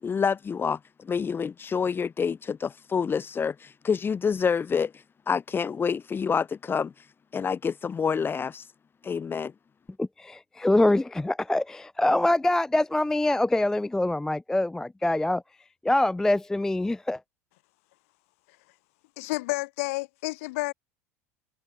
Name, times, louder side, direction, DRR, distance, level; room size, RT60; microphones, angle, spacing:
voice 1, 0.0-4.9 5.3-6.9 7.3-8.6 9.0-9.5, left 6 dB, 25° left, 4.6 m, -27 dB
voice 2, 10.0-15.4 15.8-17.2, left 1 dB, 5° left, 0.4 m, -24 dB
voice 3, 19.2-20.7, left 22 dB, 70° left, 2.6 m, -30 dB
hypercardioid pair, 80°, 8 cm